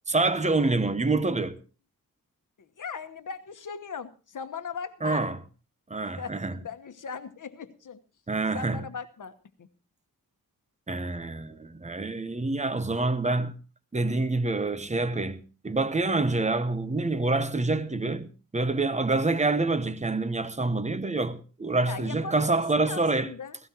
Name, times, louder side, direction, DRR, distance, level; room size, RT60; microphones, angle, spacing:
voice 1, 0.1-1.6 5.0-5.4 5.9-6.6 8.3-8.8 10.9-13.5 13.9-23.3, right 3 dB, 20° right, 0.8 m, -27 dB
voice 2, 2.6-5.3 6.2-8.0 8.5-9.7 21.8-23.6, left 5 dB, 60° left, 1.2 m, -39 dB
16.5 x 16.5 x 2.9 m
wide cardioid pair, 170°, 35 cm